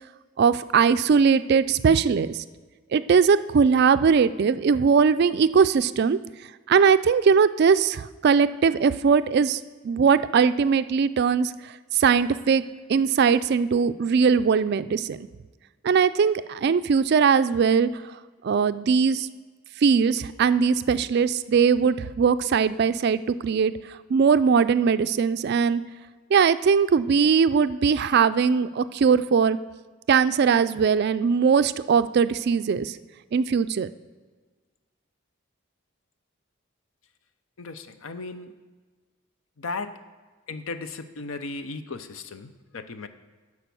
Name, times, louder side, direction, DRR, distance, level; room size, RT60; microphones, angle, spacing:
voice 1, 0.4-2.4 2.9-6.2 6.7-11.5 11.9-12.6 12.9-15.3 15.8-17.9 18.4-19.3 19.8-23.7 24.1-25.8 26.3-29.6 30.1-33.0 33.3-33.9, right 6 dB, 50° right, 13 dB, 0.3 m, -20 dB
voice 2, 37.6-38.5 39.6-40.0 40.5-43.1, left 3 dB, 75° left, 10 dB, 0.6 m, -36 dB
10.5 x 4.8 x 6.9 m, 1.4 s
head